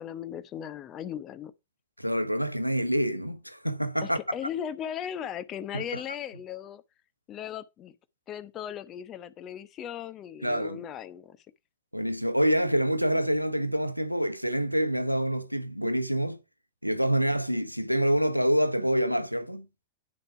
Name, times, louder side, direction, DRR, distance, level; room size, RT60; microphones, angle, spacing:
voice 1, 0.0-1.5 4.0-6.8 7.3-7.9 8.3-11.4, left 9 dB, 30° left, 1.0 m, -37 dB
voice 2, 2.0-4.2 5.7-6.0 10.4-10.8 11.9-16.4 16.8-19.7, equal, 90° right, 0.8 m, -26 dB
10.0 x 6.8 x 4.7 m
figure-of-eight pair, 90°, 0 cm